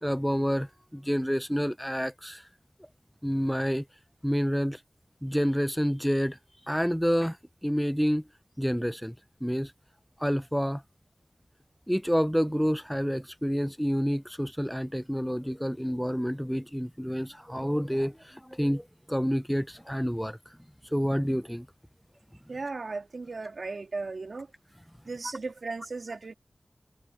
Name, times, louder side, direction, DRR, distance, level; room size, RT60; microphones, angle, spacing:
voice 1, 0.0-2.5 3.2-3.9 4.2-4.8 5.2-6.4 6.7-7.4 7.6-8.2 8.6-9.1 9.4-9.7 10.2-10.8 11.9-20.4 20.9-21.7, equal, ahead, 0.6 m, -28 dB
voice 2, 22.5-24.5 25.1-26.3, right 3 dB, 80° right, 1.9 m, -36 dB
wide cardioid pair, 55°, 0 cm